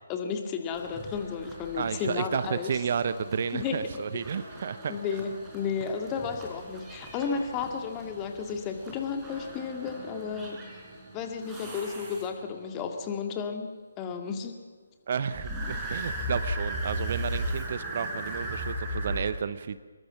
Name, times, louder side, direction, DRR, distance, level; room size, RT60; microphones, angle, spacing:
voice 1, 0.1-2.7 3.5-3.8 4.9-10.6 11.1-14.6, left 6 dB, 20° left, 4 dB, 2.3 m, -33 dB
Evil Horse, 0.7-12.6 15.3-19.2, right 1 dB, 10° right, 5.6 m, -37 dB
voice 2, 1.8-4.9 15.1-19.8, right 6 dB, 40° right, 13 dB, 0.9 m, -31 dB
25.5 x 22.0 x 7.3 m, 1.4 s
figure-of-eight pair, 145°, 0 cm